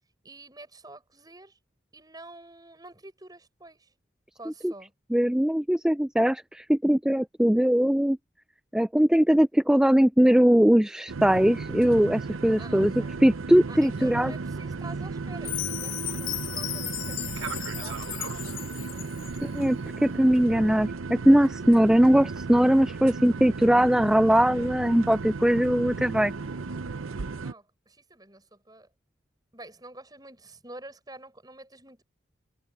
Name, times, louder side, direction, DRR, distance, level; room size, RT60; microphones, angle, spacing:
voice 1, 0.2-1.6 1.9-3.9 4.4-4.9 12.6-13.2 13.7-19.0 27.4-28.9 29.5-32.0, right 2 dB, 20° right, 7.4 m, -48 dB
voice 2, 5.1-8.2 8.7-14.3 19.4-19.8 20.0-26.3, equal, 5° right, 0.3 m, -21 dB
sound 1, 11.1-27.5, right 4 dB, 90° right, 0.7 m, -35 dB
Chime, 15.4-19.5, left 14 dB, 70° left, 3.7 m, -35 dB
open air
head